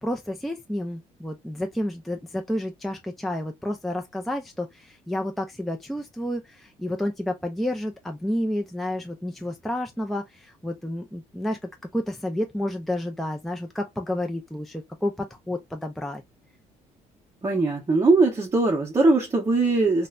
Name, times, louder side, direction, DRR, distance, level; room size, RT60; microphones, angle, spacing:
voice 1, 0.0-11.6 11.9-16.2, left 1 dB, ahead, 0.4 m, -30 dB
voice 2, 17.4-20.1, right 3 dB, 25° right, 0.8 m, -20 dB
3.0 x 2.1 x 2.3 m
cardioid pair, 85°, 15 cm